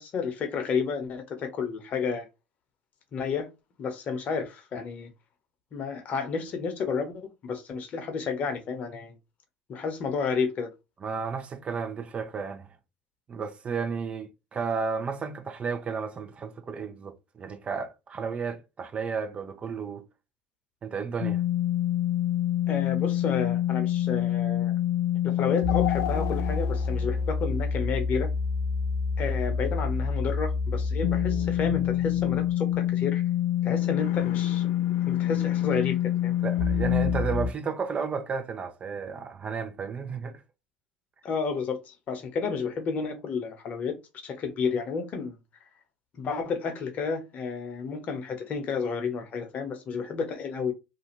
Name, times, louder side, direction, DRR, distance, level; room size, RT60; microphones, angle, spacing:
voice 1, 0.0-2.3 3.1-3.5 3.8-5.1 5.7-9.1 9.7-10.7 22.7-24.7 25.2-28.3 29.2-33.2 33.6-34.7 35.1-36.3 41.2-44.0 44.2-45.4 46.1-50.7, left 5 dB, 45° left, 0.9 m, -31 dB
voice 2, 11.0-12.7 13.3-20.0 20.8-21.4 36.4-40.3, right 5 dB, 35° right, 0.6 m, -33 dB
sound 1, 21.2-37.5, left 9 dB, 60° left, 0.4 m, -26 dB
2.6 x 2.3 x 2.9 m
hypercardioid pair, 65°, 4 cm